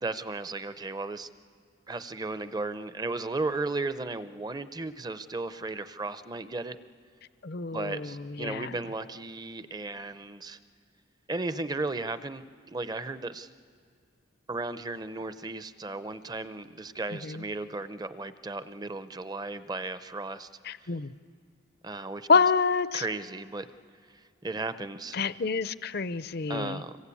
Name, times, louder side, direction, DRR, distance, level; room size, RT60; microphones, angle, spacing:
voice 1, 0.0-1.3 1.9-6.8 7.7-10.6 11.3-13.5 14.5-20.5 20.8-20.9 21.8-22.3 22.9-23.7 24.1-25.2 26.5-27.0, right 3 dB, 20° right, 12 dB, 0.6 m, -35 dB
voice 2, 7.4-8.7 17.2-17.4 20.7-21.1 22.3-23.0 25.1-26.8, left 5 dB, 50° left, 15 dB, 0.6 m, -27 dB
26.0 x 23.0 x 8.5 m, 2.3 s
head